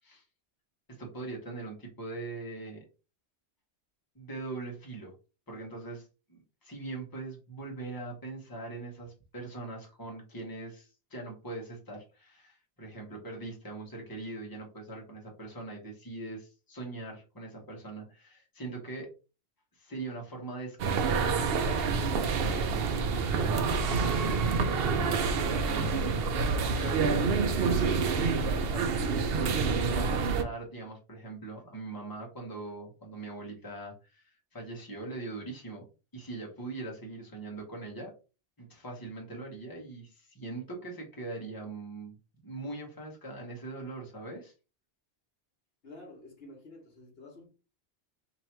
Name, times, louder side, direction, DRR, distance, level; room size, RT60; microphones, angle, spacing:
voice 1, 0.9-2.8 4.1-5.1 5.5-19.1 19.7-29.0 29.7-35.9 36.1-38.1 38.6-42.2 42.4-44.5, right 3 dB, 20° left, 1.2 m, -41 dB
sound 1, 20.8-30.4, right 4 dB, 65° right, 0.8 m, -27 dB
voice 2, 45.8-47.5, left 2 dB, 65° left, 1.3 m, -50 dB
3.0 x 2.9 x 4.4 m
omnidirectional pair, 1.1 m